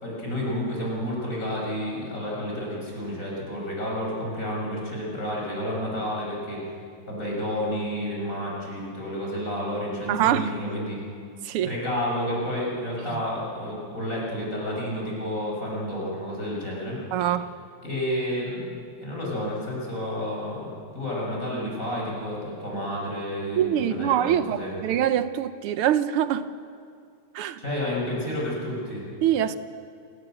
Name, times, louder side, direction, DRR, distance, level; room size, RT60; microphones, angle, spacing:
voice 1, 0.0-6.6 7.1-11.0 11.6-17.0 17.8-18.7 19.0-24.8 27.6-29.1, equal, 35° left, 7.1 m, -30 dB
voice 2, 10.1-10.5 11.4-11.7 13.1-13.2 17.1-17.5 23.6-26.5 27.4-27.6 29.2-29.6, right 10 dB, 80° right, 1.7 m, -24 dB
28.5 x 18.0 x 7.9 m
omnidirectional pair, 2.4 m